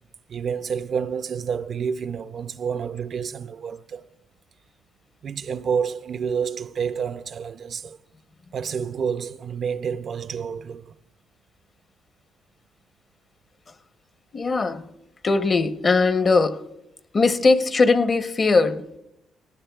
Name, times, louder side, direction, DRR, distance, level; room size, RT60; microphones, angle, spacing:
voice 1, 0.3-4.1 5.2-8.0 8.5-10.9, right 6 dB, 55° right, 0.4 m, -29 dB
voice 2, 14.3-14.9 15.2-16.6 17.1-19.0, left 3 dB, 35° left, 0.7 m, -20 dB
18.0 x 17.5 x 2.3 m
cardioid pair, 90°, 0 cm